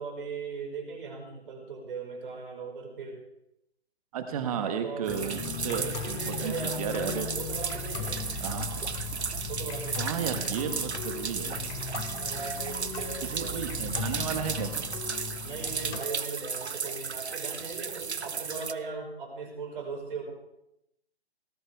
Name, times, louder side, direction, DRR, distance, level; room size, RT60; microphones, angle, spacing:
voice 1, 0.0-3.2 4.6-7.1 7.4-8.2 9.5-10.0 12.1-14.2 15.4-20.3, right 4 dB, 55° right, 1 dB, 5.2 m, -39 dB
voice 2, 4.1-7.3 8.4-8.7 10.0-11.5 13.2-14.9, right 8 dB, 35° right, 7 dB, 1.3 m, -33 dB
sound 1, 5.1-16.0, left 6 dB, 10° left, 0.7 m, -37 dB
sound 2, 5.1-18.7, right 5 dB, 85° right, 1.0 m, -35 dB
18.5 x 14.5 x 3.5 m, 0.84 s
figure-of-eight pair, 140°, 32 cm